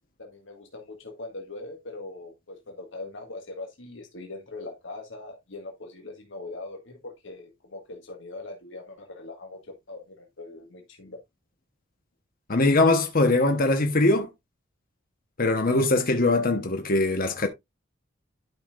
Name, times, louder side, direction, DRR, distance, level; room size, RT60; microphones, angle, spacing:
voice 1, 0.2-9.6 9.9-11.2, left 2 dB, 65° left, 2.0 m, -41 dB
voice 2, 12.5-14.3 15.4-17.5, left 2 dB, 50° left, 1.2 m, -21 dB
12.0 x 5.7 x 2.6 m
head